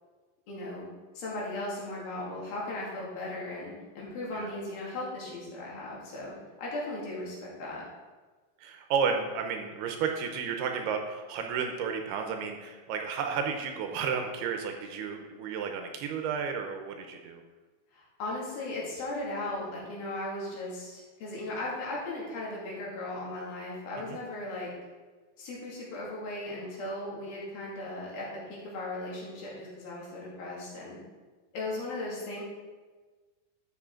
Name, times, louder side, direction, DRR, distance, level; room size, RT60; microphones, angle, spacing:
voice 1, 0.5-0.9 1.2-6.3 6.6-7.8 17.9-24.7 25.4-31.0 31.5-32.4, left 2 dB, 65° left, -5 dB, 3.8 m, -37 dB
voice 2, 8.6-17.4 24.0-24.2, right 6 dB, 80° right, 4 dB, 2.7 m, -32 dB
12.0 x 7.4 x 3.8 m, 1.3 s
omnidirectional pair, 4.9 m